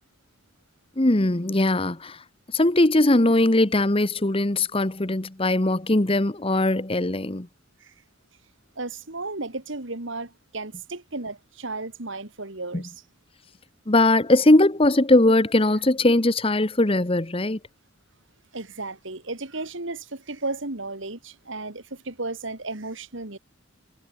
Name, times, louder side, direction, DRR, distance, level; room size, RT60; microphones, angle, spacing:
voice 1, 1.0-2.2 2.5-7.5 12.7-12.8 13.9-17.6, left 2 dB, 25° left, 1.1 m, -20 dB
voice 2, 8.8-13.0 18.5-23.4, right 2 dB, 60° right, 2.4 m, -34 dB
head